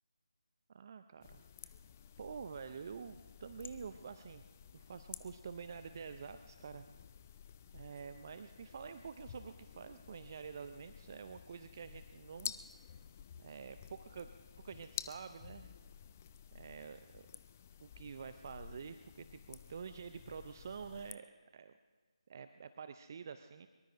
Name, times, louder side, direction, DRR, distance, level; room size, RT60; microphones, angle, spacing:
voice 1, 0.7-1.7 2.2-4.4 4.7-6.9 7.7-12.5 13.4-14.3 14.6-15.8 16.5-17.3 17.8-21.3 21.5-21.7 22.3-23.7, right 6 dB, 30° right, 10 dB, 0.5 m, -48 dB
sound 1, 1.2-21.1, left 9 dB, 20° left, 0.4 m, -52 dB
23.5 x 23.0 x 2.6 m, 1.4 s
figure-of-eight pair, 155°, 3 cm